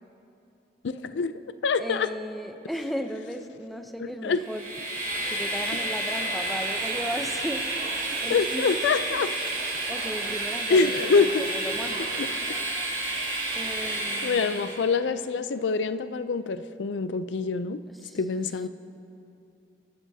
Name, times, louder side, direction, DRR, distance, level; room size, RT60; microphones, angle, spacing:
voice 1, 1.0-2.1 4.0-4.4 8.3-9.3 10.7-11.3 12.2-12.4 13.8-17.8 18.1-18.7, left 4 dB, 90° left, 12 dB, 0.4 m, -26 dB
voice 2, 1.8-4.6 5.2-8.9 9.9-12.1 13.5-14.8 17.9-18.2, equal, ahead, 6 dB, 0.6 m, -36 dB
Train, 4.4-14.9, right 2 dB, 50° right, 2.6 m, -30 dB
28.0 x 12.0 x 2.8 m, 2.8 s
head